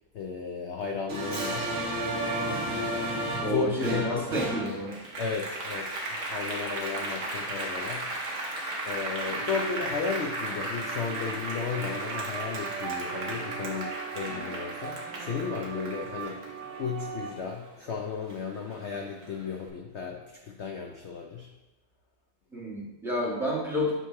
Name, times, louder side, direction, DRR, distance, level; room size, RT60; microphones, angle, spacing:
voice 1, 0.1-1.8 3.3-4.3 5.2-8.4 8.9-16.4 16.8-21.5, left 6 dB, 70° left, 2 dB, 0.6 m, -34 dB
Applause, 1.1-17.9 18.3-19.5, right 1 dB, 55° right, 1.4 m, -34 dB
voice 2, 3.4-4.9 22.5-23.9, equal, ahead, -6 dB, 1.6 m, -30 dB
sound 1, 9.3-17.3, right 8 dB, 85° right, 1.6 m, -40 dB
8.2 x 3.1 x 4.5 m, 1.1 s
omnidirectional pair, 1.8 m